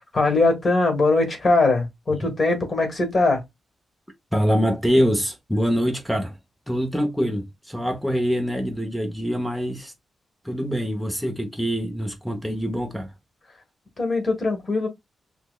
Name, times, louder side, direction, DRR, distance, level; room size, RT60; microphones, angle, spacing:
voice 1, 0.1-3.4 14.0-14.9, left 3 dB, 30° left, 1.5 m, -21 dB
voice 2, 4.3-6.3 6.7-9.9 10.4-13.1, equal, ahead, 0.7 m, -24 dB
5.8 x 2.0 x 2.3 m
wide cardioid pair, 145°, 0 cm